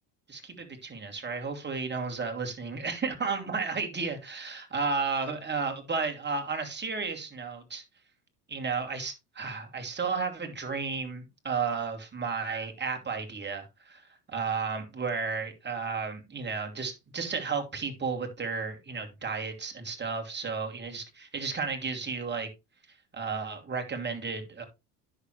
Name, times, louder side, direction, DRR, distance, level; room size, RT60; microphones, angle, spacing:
voice 1, 0.3-7.8 8.5-14.0 14.3-22.5 23.1-24.6, right 5 dB, 20° right, 2.8 m, -33 dB
10.0 x 6.6 x 3.2 m
hypercardioid pair, 75°, 46 cm